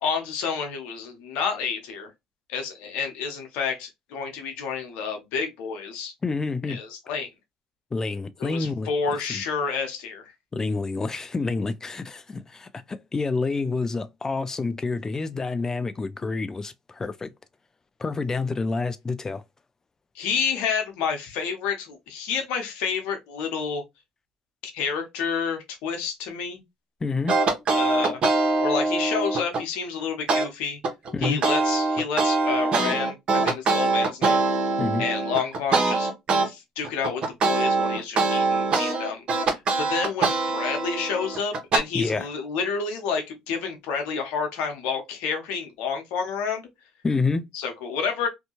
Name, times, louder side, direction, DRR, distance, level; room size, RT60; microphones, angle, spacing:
voice 1, 0.0-2.1 2.5-6.1 6.7-7.3 8.4-10.3 20.1-23.8 24.6-26.6 27.7-28.2 28.6-30.8 31.2-34.4 35.0-36.1 36.4-46.7 47.5-48.3, left 6 dB, 80° left, 0.8 m, -29 dB
voice 2, 6.2-6.8 7.9-8.9 9.3-9.4 10.5-17.3 18.0-19.4 27.0-27.4 31.1-31.4 34.8-35.1 41.9-42.3 47.0-47.4, left 3 dB, 25° left, 0.4 m, -28 dB
sound 1, 27.3-29.6 30.3-30.5 30.8-36.5 36.8-41.8, right 3 dB, 50° right, 0.9 m, -23 dB
2.6 x 2.2 x 2.8 m
supercardioid pair, 75°, 2 cm